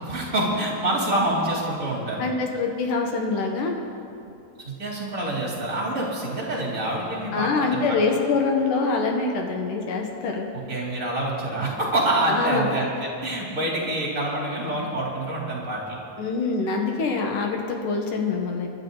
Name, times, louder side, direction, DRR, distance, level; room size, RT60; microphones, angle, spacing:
voice 1, 0.0-2.3 4.6-8.0 10.7-16.0, right 1 dB, 20° right, -4 dB, 3.1 m, -26 dB
voice 2, 2.2-3.8 7.3-10.5 12.3-12.8 16.2-18.7, left 4 dB, 65° left, 2 dB, 2.6 m, -25 dB
27.0 x 12.0 x 4.0 m, 2.6 s
omnidirectional pair, 4.4 m